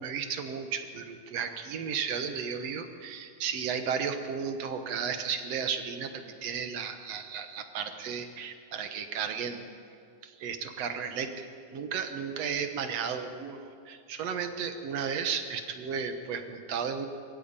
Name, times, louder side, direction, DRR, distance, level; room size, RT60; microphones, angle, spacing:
voice 1, 0.0-9.6 10.2-17.1, right 6 dB, 60° right, 7 dB, 2.0 m, -34 dB
23.0 x 14.5 x 8.8 m, 2.3 s
omnidirectional pair, 3.9 m